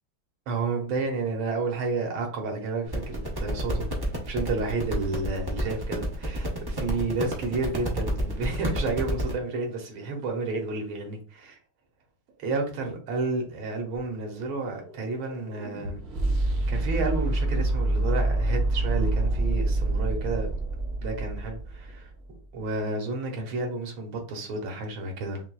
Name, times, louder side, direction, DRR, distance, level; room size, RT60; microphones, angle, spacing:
voice 1, 0.5-11.2 11.5-11.6 12.4-16.0 16.7-20.5 21.0-22.1 22.5-25.4, right 3 dB, 85° right, 1.9 m, -31 dB
sound 1, 2.9-9.3, equal, 30° right, 0.4 m, -31 dB
sound 2, 13.9-22.1, right 2 dB, 60° right, 1.1 m, -27 dB
5.7 x 2.7 x 2.3 m
omnidirectional pair, 2.2 m